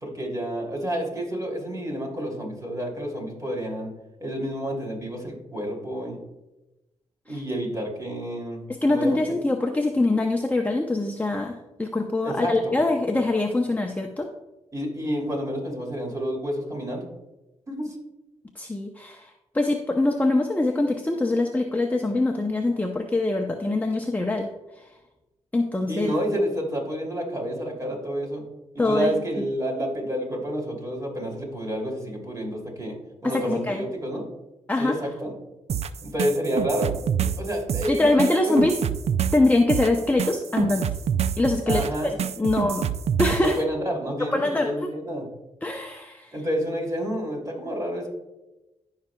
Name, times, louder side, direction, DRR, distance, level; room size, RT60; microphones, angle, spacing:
voice 1, 0.0-3.9 4.2-6.2 7.2-8.6 8.9-9.2 12.2-12.8 14.7-17.1 17.7-18.0 25.9-28.4 28.8-33.0 33.2-34.3 34.8-35.3 36.0-38.6 41.7-42.1 43.4-45.3 46.3-48.1, equal, 30° right, 0 dB, 2.9 m, -29 dB
voice 2, 8.7-14.3 18.6-24.5 24.8-24.9 25.5-26.1 28.8-29.4 33.2-33.9 34.7-34.9 37.9-38.8 39.3-40.9 41.4-41.9 42.4-42.8 43.2-43.6 44.3-44.7 45.6-46.3, left 2 dB, 15° left, 3 dB, 0.7 m, -23 dB
sound 1, 35.7-43.5, right 8 dB, 65° right, 0.4 m, -27 dB
14.5 x 5.7 x 2.3 m, 1.0 s
cardioid pair, 65°, 12 cm